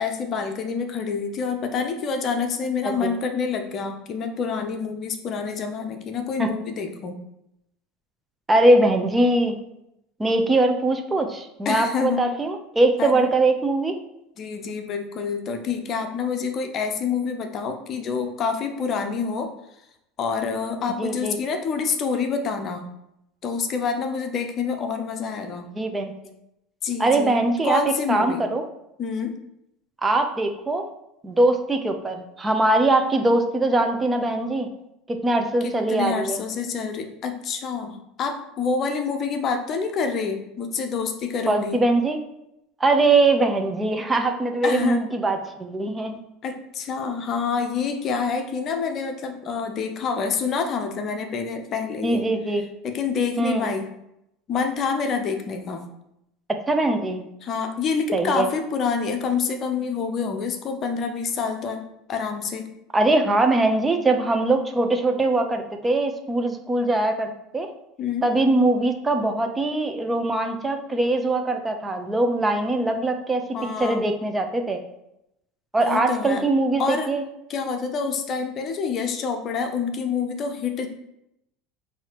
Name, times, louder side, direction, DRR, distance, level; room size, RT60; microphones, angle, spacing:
voice 1, 0.0-7.2 11.6-12.3 13.0-13.3 14.4-19.5 20.2-22.8 23.4-25.7 26.8-28.4 29.0-29.4 35.6-41.8 44.6-45.1 46.4-52.2 52.8-53.9 54.5-55.8 57.4-62.7 68.0-68.3 73.5-74.0 75.8-76.4 76.8-77.1 77.5-80.9, left 5 dB, 45° left, 6 dB, 0.7 m, -27 dB
voice 2, 8.5-9.6 10.2-13.9 21.0-21.4 25.8-26.1 27.0-27.8 28.1-28.6 30.0-30.8 31.2-34.7 35.1-36.4 41.5-42.2 42.8-46.2 52.0-52.6 53.4-53.6 56.7-57.2 58.1-58.4 62.9-67.7 68.2-73.4 73.8-74.8 75.7-77.2, right 2 dB, 20° right, 5 dB, 0.7 m, -22 dB
5.6 x 2.8 x 3.0 m, 0.83 s
hypercardioid pair, 80°, 0 cm